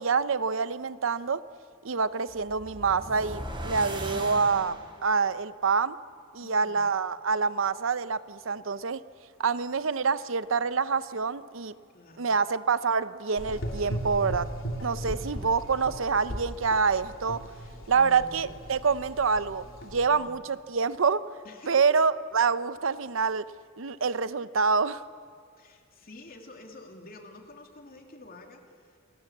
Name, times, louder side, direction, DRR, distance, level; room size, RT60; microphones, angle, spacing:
voice 1, 0.0-1.4 1.8-6.0 6.3-9.0 9.4-11.7 12.2-14.5 14.8-17.4 17.9-21.3 21.7-23.5 23.8-25.0, right 5 dB, 80° right, 15 dB, 0.7 m, -26 dB
sound 1, 2.3-5.1, right 1 dB, 25° right, 4.3 m, -38 dB
voice 2, 6.4-6.9 11.9-12.3 17.4-18.5 20.1-20.4 21.4-22.0 25.6-29.0, left 2 dB, 50° left, 3 dB, 2.9 m, -49 dB
Gurgling / Engine, 13.4-20.1, equal, 90° left, 2.9 m, -37 dB
28.5 x 20.5 x 7.3 m, 2.2 s
head